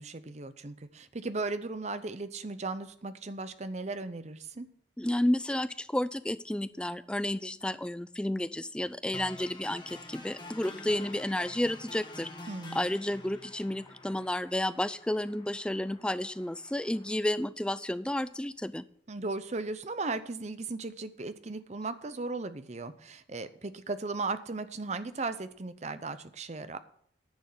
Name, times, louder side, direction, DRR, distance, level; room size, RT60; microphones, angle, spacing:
voice 1, 0.0-4.7 12.5-12.9 19.1-26.8, right 3 dB, 35° right, 12 dB, 0.7 m, -36 dB
voice 2, 5.0-12.3 12.7-18.8, left 1 dB, 5° left, 14 dB, 0.3 m, -31 dB
sound 1, 9.1-17.1, left 2 dB, 25° left, 1.2 m, -48 dB
10.5 x 6.3 x 7.1 m, 0.65 s
head